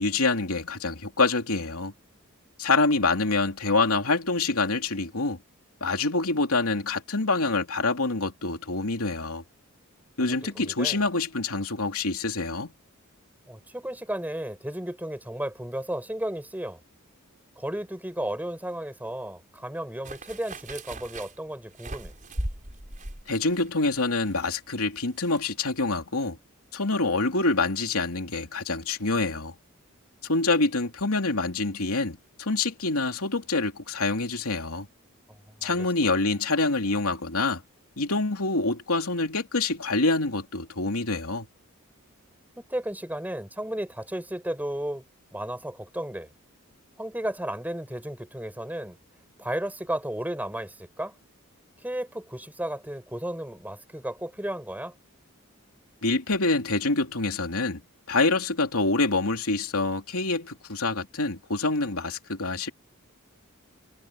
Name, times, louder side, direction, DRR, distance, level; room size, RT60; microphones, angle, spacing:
voice 1, 0.0-1.9 2.6-5.4 5.8-9.4 10.2-12.7 23.3-26.4 26.7-29.6 30.3-34.9 35.6-37.6 38.0-41.5 56.0-57.8 58.1-62.7, left 3 dB, 85° left, 2.9 m, -26 dB
voice 2, 10.2-11.0 13.5-16.8 17.6-22.1 35.3-35.9 42.6-45.0 45.3-46.3 47.0-49.0 49.4-51.1 51.8-54.9, right 1 dB, 10° right, 4.3 m, -34 dB
sound 1, 20.0-25.4 25.7-25.8, right 1 dB, 40° right, 5.7 m, -39 dB
head